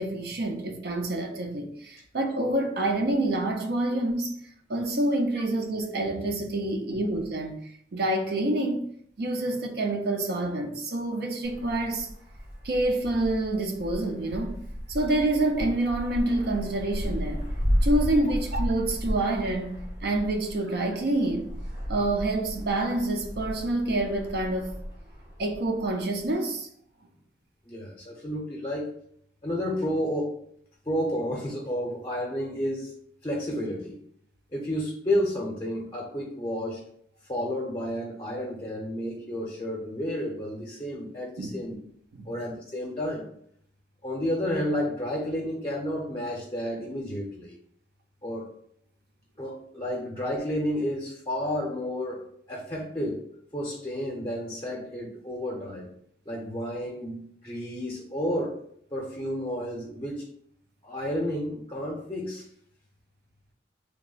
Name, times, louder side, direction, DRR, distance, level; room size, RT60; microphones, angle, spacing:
voice 1, 0.0-4.4 4.7-8.9 9.2-12.1 12.6-14.6 14.9-17.5 17.8-21.5 21.9-24.7 25.4-26.7 41.4-41.5 42.1-42.3, right 2 dB, 60° right, 0.5 m, -27 dB
Wind, 11.4-26.3, equal, 85° right, 1.3 m, -34 dB
voice 2, 27.7-28.9 29.4-30.3 30.9-32.9 33.2-34.0 34.5-36.8 37.3-41.7 42.3-43.2 44.0-47.6 48.2-48.5 49.4-53.2 53.5-55.9 56.3-58.6 58.9-60.3 60.8-62.4, equal, 25° left, 0.6 m, -31 dB
3.4 x 2.1 x 3.8 m
head